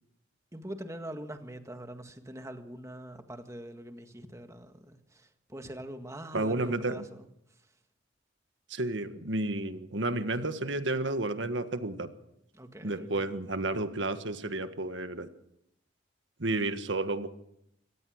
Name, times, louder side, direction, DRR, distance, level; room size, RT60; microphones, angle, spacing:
voice 1, 0.5-7.7 12.5-13.3, right 1 dB, 15° right, 1.7 m, -44 dB
voice 2, 6.3-7.0 8.7-12.1 12.8-15.3 16.4-17.3, right 2 dB, 75° right, 1.6 m, -31 dB
24.0 x 18.0 x 6.5 m
head